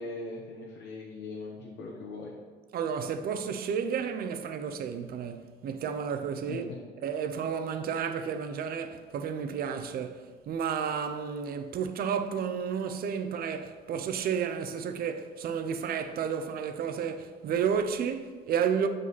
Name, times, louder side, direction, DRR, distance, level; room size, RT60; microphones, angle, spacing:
voice 1, 0.0-2.4 6.5-6.8, left 3 dB, 65° left, 1.1 m, -40 dB
voice 2, 2.7-6.6 7.0-18.9, right 7 dB, 55° right, 0.6 m, -31 dB
7.5 x 5.1 x 4.0 m
cardioid pair, 130°, 19 cm